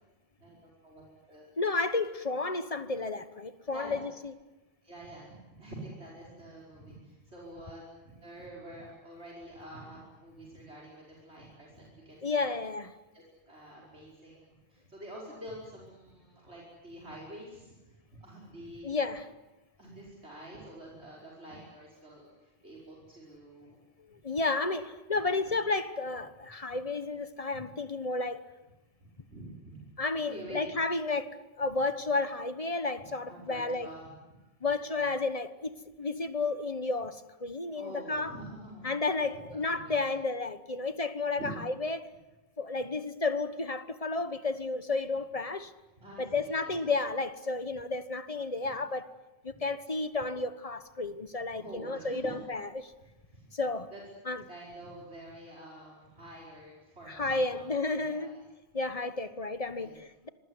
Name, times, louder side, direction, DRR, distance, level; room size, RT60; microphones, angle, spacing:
voice 1, 0.4-1.5 3.7-4.0 4.8-12.6 13.1-18.9 19.8-23.8 25.1-25.4 26.7-26.8 29.3-29.8 30.3-30.7 33.3-34.4 37.8-39.0 39.3-40.2 41.3-41.6 42.7-42.8 46.0-46.8 49.5-49.6 51.5-52.6 53.3-53.5 53.9-58.4 59.8-60.0, right 1 dB, 90° right, 5.5 m, -47 dB
voice 2, 1.6-4.3 12.2-12.9 18.8-19.3 24.2-28.4 30.0-33.9 34.6-38.4 38.8-42.1 42.6-45.7 46.2-49.0 49.4-52.9 53.5-53.9 54.3-54.4 57.1-58.4 58.7-60.3, left 3 dB, 35° left, 1.3 m, -32 dB
26.5 x 22.0 x 9.7 m
omnidirectional pair, 1.1 m